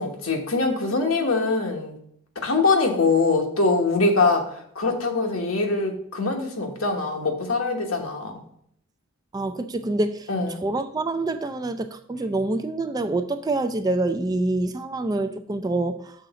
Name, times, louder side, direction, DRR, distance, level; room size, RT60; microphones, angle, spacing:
voice 1, 0.0-1.9 2.4-4.4 4.7-8.4 10.3-10.6, left 3 dB, 75° left, 2 dB, 1.3 m, -23 dB
voice 2, 9.3-16.1, right 2 dB, 15° right, 9 dB, 0.3 m, -26 dB
6.3 x 3.9 x 5.8 m, 0.69 s
head